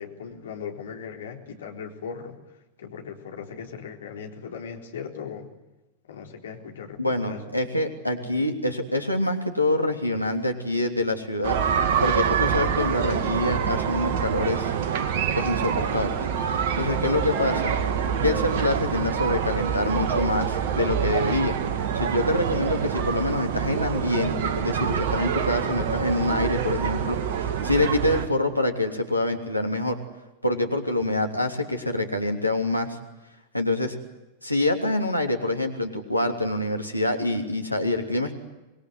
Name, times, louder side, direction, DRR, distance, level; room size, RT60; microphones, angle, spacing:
voice 1, 0.0-2.4 2.8-5.5 6.1-7.4 17.2-17.3, left 6 dB, 65° left, 3 dB, 4.0 m, -38 dB
voice 2, 7.0-11.5 12.0-14.7 15.4-16.1 16.7-17.7 18.2-21.6 21.9-30.0 30.4-33.0 33.5-34.0 34.4-38.3, left 1 dB, 90° left, 3 dB, 3.2 m, -26 dB
sound 1, 11.4-28.3, right 7 dB, 50° right, 2.2 m, -26 dB
26.5 x 21.0 x 9.5 m, 1.0 s
figure-of-eight pair, 90°, 0 cm